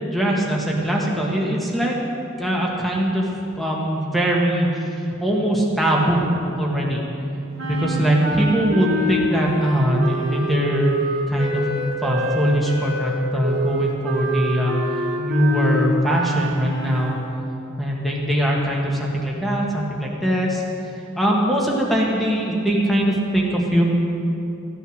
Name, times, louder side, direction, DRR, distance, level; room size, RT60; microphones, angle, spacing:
voice 1, 0.1-2.0 2.4-3.3 3.6-4.9 5.2-6.3 6.6-7.0 7.6-11.0 11.3-11.6 12.0-17.2 17.8-20.6 21.2-23.8, equal, ahead, -3 dB, 1.7 m, -21 dB
sound 1, 7.6-17.2, equal, 70° right, 1.6 m, -26 dB
15.0 x 9.2 x 6.5 m, 2.9 s
head